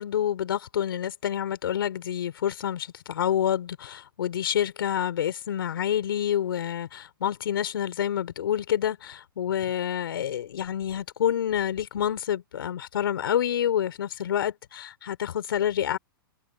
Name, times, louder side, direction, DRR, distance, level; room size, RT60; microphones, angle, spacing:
voice 1, 0.0-16.0, left 10 dB, 75° left, 4.5 m, -28 dB
hypercardioid pair, 125°, 12 cm